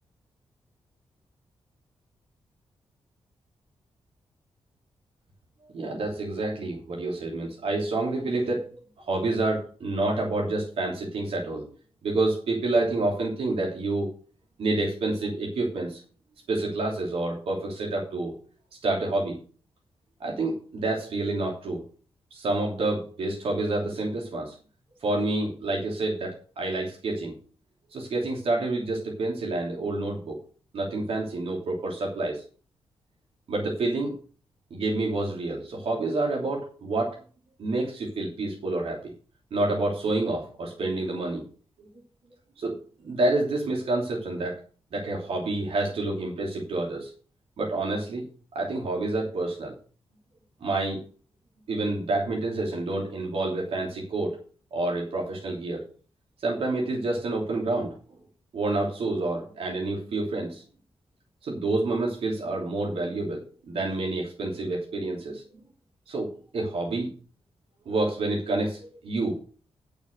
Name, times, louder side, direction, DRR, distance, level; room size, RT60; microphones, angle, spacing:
voice 1, 5.7-8.7 9.0-11.6 12.0-14.1 14.6-16.0 16.5-18.3 18.8-19.4 20.2-21.8 22.3-24.6 25.0-27.3 27.9-30.4 30.7-32.4 33.5-34.2 34.7-37.2 37.6-39.1 39.5-41.4 41.8-41.9 42.6-44.6 44.9-47.1 47.6-48.2 48.5-49.8 50.6-51.0 51.7-54.4 54.7-55.8 56.4-57.9 58.5-60.6 61.4-65.4 66.1-67.1 67.8-69.4, right 2 dB, 75° right, -1 dB, 3.0 m, -28 dB
9.0 x 7.0 x 6.5 m, 0.40 s
wide cardioid pair, 120°, 10 cm